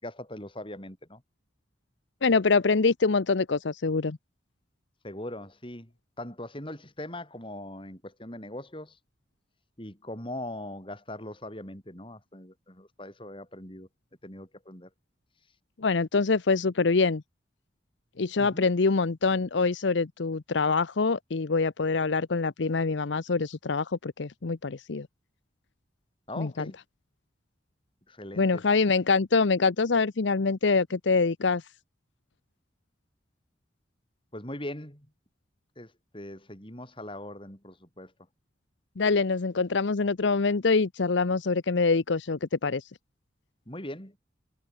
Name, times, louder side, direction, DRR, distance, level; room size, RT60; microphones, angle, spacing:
voice 1, 0.0-1.2 5.0-5.9 6.2-9.0 9.8-13.9 14.2-14.9 18.4-18.7 26.3-26.8 28.1-28.6 34.3-35.1 35.8-38.1 43.7-44.2, left 1 dB, 25° left, 6.7 m, -40 dB
voice 2, 2.2-4.2 15.8-17.2 18.2-25.1 26.4-26.7 28.4-31.6 39.0-42.8, left 4 dB, 70° left, 0.7 m, -25 dB
head